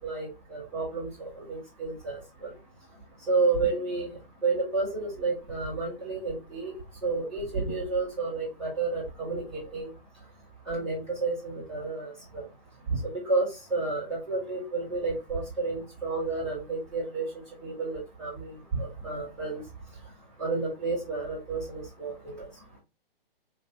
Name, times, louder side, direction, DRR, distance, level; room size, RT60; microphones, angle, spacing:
voice 1, 0.0-2.5 3.3-4.1 4.4-6.7 7.0-9.9 10.7-12.4 12.9-13.4 13.7-17.2 17.6-19.6 20.4-22.5, right 3 dB, 5° right, -13 dB, 2.1 m, -31 dB
3.3 x 3.0 x 3.0 m, 0.27 s
hypercardioid pair, 170°, 29 cm